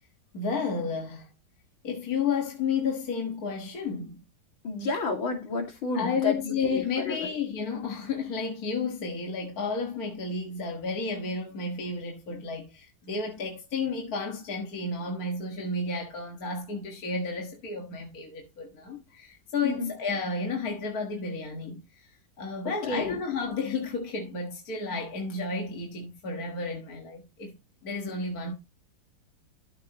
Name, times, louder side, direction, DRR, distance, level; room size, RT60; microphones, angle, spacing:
voice 1, 0.3-1.3 1.8-4.2 5.9-27.6 27.8-28.5, left 4 dB, 50° left, 2.0 m, -32 dB
voice 2, 4.6-6.5 7.1-7.2 19.6-19.9 22.9-23.2, left 3 dB, 80° left, 3.2 m, -30 dB
13.5 x 6.7 x 3.0 m
omnidirectional pair, 2.1 m